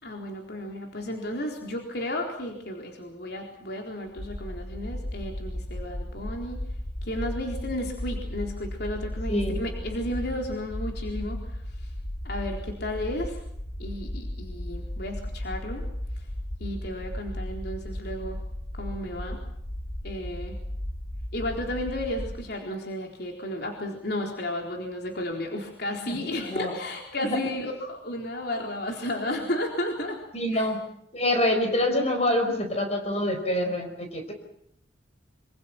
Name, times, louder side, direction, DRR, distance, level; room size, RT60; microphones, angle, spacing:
voice 1, 0.0-6.6 7.0-11.9 12.2-13.4 13.8-15.8 16.2-16.3 16.6-18.4 18.7-19.4 20.0-20.6 21.3-30.2 30.5-30.7, left 1 dB, 60° left, 1 dB, 4.0 m, -33 dB
sound 1, 4.1-22.3, left 1 dB, 80° left, 5.0 m, -35 dB
voice 2, 26.1-26.7 27.2-27.4 30.3-30.8 31.1-34.3, left 1 dB, 35° left, 4 dB, 5.0 m, -26 dB
26.0 x 26.0 x 6.0 m, 0.72 s
head